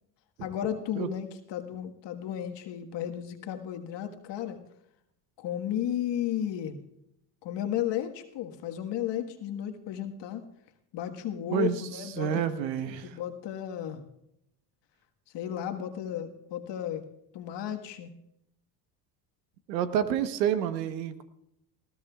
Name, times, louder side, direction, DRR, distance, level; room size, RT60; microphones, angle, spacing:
voice 1, 0.4-4.6 5.4-6.8 7.4-10.4 10.9-12.4 12.8-14.1 15.3-17.0 17.3-18.1, left 10 dB, 60° left, 5 dB, 1.6 m, -34 dB
voice 2, 11.5-13.2 19.7-21.2, right 9 dB, 85° right, 11 dB, 1.2 m, -29 dB
20.0 x 16.5 x 2.4 m, 0.79 s
hypercardioid pair, 65°, 49 cm